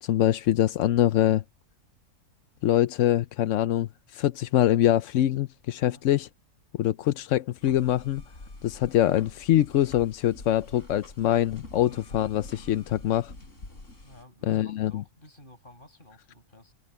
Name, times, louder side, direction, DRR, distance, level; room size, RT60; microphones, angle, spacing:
voice 1, 0.0-1.4 2.6-6.3 6.7-8.2 8.6-13.3 14.4-15.0, left 12 dB, 65° left, 0.8 m, -24 dB
sound 1, 7.6-14.2, left 2 dB, 50° left, 4.8 m, -46 dB
voice 2, 14.0-16.7, left 1 dB, 30° left, 6.3 m, -53 dB
open air
omnidirectional pair, 1.7 m